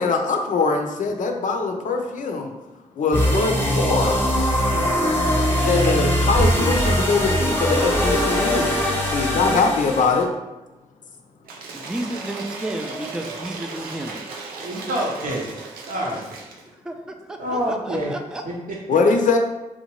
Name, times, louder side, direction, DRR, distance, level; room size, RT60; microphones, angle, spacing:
voice 1, 0.0-2.5 3.0-4.2 5.6-8.8 9.1-10.3 18.9-19.4, left 4 dB, 65° left, 3 dB, 0.4 m, -22 dB
sound 1, 3.1-10.2, equal, 15° left, 0.8 m, -21 dB
Cheering / Applause / Crowd, 11.4-16.7, right 4 dB, 90° right, 0.4 m, -36 dB
voice 2, 11.7-14.2 16.9-17.0 17.3-18.4, right 1 dB, 5° right, 4 dB, 0.3 m, -31 dB
voice 3, 14.6-15.4 15.9-16.3 17.4-18.1 18.4-18.8, equal, 70° right, -3 dB, 0.8 m, -27 dB
2.7 x 2.1 x 2.9 m, 1.0 s
supercardioid pair, 45°, 15 cm